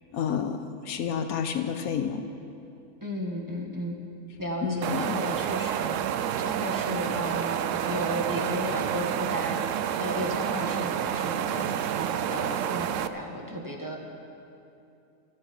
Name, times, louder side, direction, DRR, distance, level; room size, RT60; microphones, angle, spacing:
voice 1, 0.1-2.2 4.6-5.2, left 7 dB, 70° left, 8 dB, 1.2 m, -30 dB
voice 2, 3.0-4.0 4.4-14.0, equal, 15° right, 0 dB, 1.4 m, -34 dB
sound 1, 4.8-13.1, right 10 dB, 70° right, 0.8 m, -29 dB
25.5 x 9.0 x 5.4 m, 2.7 s
omnidirectional pair, 1.6 m